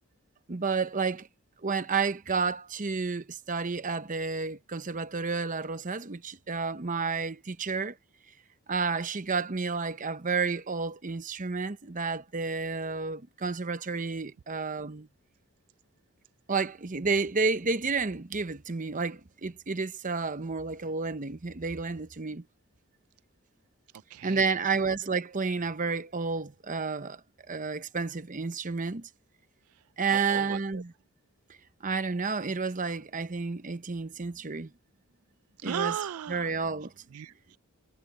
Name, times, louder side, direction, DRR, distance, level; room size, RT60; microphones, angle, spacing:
voice 1, 0.5-1.3 1.6-8.0 8.7-15.1 16.5-22.4 24.2-27.2 27.5-29.1 30.0-30.9 31.8-34.7 35.6-35.9 36.3-36.9, right 4 dB, 35° right, 0.9 m, -31 dB
voice 2, 24.1-24.6 29.7-30.8 35.6-36.5 37.1-37.6, right 8 dB, 75° right, 0.4 m, -36 dB
head